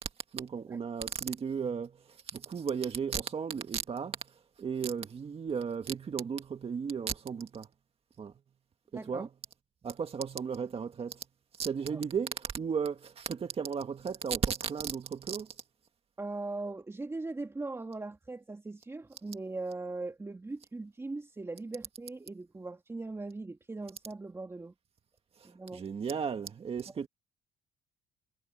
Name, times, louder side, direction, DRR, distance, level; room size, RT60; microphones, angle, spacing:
voice 1, 0.0-7.7 8.2-8.3 8.9-9.3 9.8-11.3 11.5-15.6 25.4-27.1, right 6 dB, 35° right, 1.8 m, -35 dB
voice 2, 8.9-9.3 11.9-12.0 16.2-24.7 25.4-25.8, right 3 dB, 15° right, 2.7 m, -40 dB
cardioid pair, 110°, 17 cm